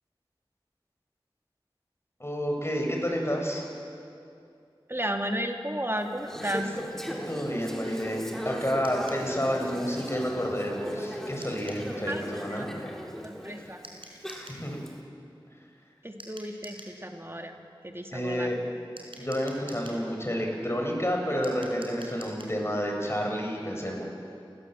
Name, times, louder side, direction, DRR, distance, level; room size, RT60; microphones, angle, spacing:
voice 1, 2.2-3.6 7.3-12.7 14.5-14.8 18.1-18.6 19.2-24.0, equal, 30° left, 1 dB, 6.1 m, -30 dB
voice 2, 4.9-6.8 12.1-12.7 13.2-13.8 16.0-17.5 17.8-18.5, right 1 dB, 25° right, 3 dB, 2.4 m, -33 dB
Conversation / Chatter, 6.0-14.9, equal, 5° left, 3.7 m, -38 dB
sound 1, 8.8-9.3 11.4-11.9 13.8-14.6 16.2-17.0 19.0-20.0 21.4-22.6, right 1 dB, 75° right, 4.5 m, -47 dB
30.0 x 19.0 x 7.5 m, 2.5 s
wide cardioid pair, 40°, 9 cm